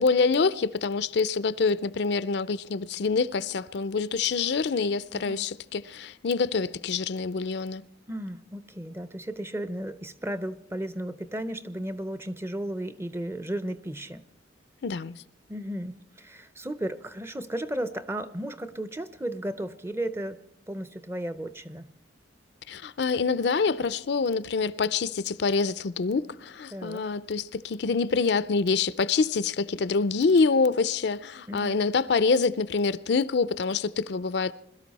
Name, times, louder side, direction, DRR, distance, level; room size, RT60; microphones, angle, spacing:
voice 1, 0.0-7.8 14.8-15.1 22.7-34.5, left 4 dB, 60° left, 0.5 m, -26 dB
voice 2, 5.1-5.5 8.1-14.2 15.5-20.4 20.7-21.9 26.7-27.0 31.5-31.8, right 1 dB, 15° right, 0.5 m, -34 dB
21.5 x 13.0 x 4.1 m
head